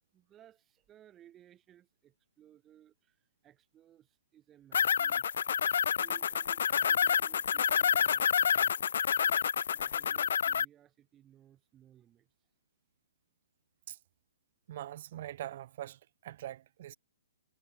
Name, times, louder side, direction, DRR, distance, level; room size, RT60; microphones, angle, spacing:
voice 1, 0.1-8.8 9.2-12.5, right 11 dB, 20° right, 7.8 m, -61 dB
sound 1, 4.7-10.6, left 7 dB, 65° left, 0.3 m, -28 dB
voice 2, 14.7-17.0, right 13 dB, 50° right, 2.2 m, -43 dB
hypercardioid pair, 140°, 0 cm